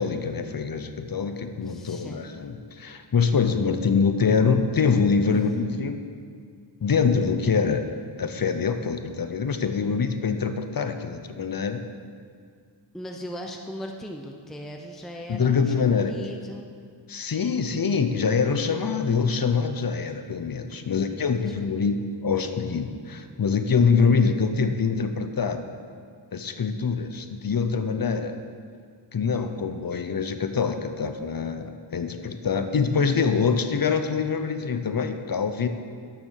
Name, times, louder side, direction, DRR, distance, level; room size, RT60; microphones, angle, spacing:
voice 1, 0.0-6.1 6.8-7.9 8.2-11.9 15.3-16.2 17.1-25.7 26.3-28.4 29.1-35.7, left 5 dB, 50° left, 8 dB, 0.9 m, -24 dB
voice 2, 1.7-2.2 12.9-16.7 20.9-21.5, equal, ahead, 2 dB, 0.7 m, -39 dB
11.5 x 7.0 x 6.5 m, 2.1 s
wide cardioid pair, 95°, 45 cm